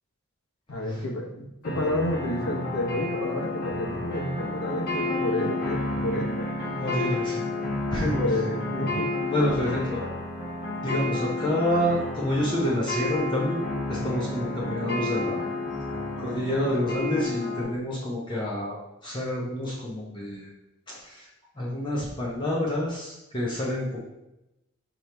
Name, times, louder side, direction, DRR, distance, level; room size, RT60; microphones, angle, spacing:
voice 1, 0.7-6.5 8.1-9.1 9.7-10.1 14.6-14.8, left 1 dB, 90° left, 0 dB, 0.9 m, -30 dB
sound 1, 1.6-17.6, left 2 dB, 45° left, 1.6 m, -31 dB
voice 2, 6.8-7.4 7.9-8.2 9.3-10.0 10.8-13.6 13.9-15.4 16.2-20.5 21.0-21.3 21.6-24.0, left 1 dB, 20° left, -5 dB, 0.7 m, -28 dB
5.3 x 3.0 x 3.3 m, 0.91 s
head